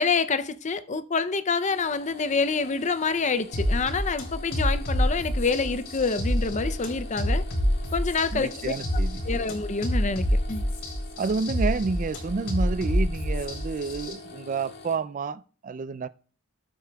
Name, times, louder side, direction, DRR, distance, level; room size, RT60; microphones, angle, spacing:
voice 1, 0.0-7.4 7.9-8.7 9.2-10.6, left 4 dB, 35° left, 0.5 m, -27 dB
sound 1, 1.7-14.9, left 3 dB, 50° left, 1.6 m, -45 dB
sound 2, 3.5-14.1, equal, 80° left, 3.5 m, -27 dB
voice 2, 8.3-9.2 11.2-16.1, right 4 dB, 35° right, 0.3 m, -29 dB
17.5 x 7.9 x 2.3 m
head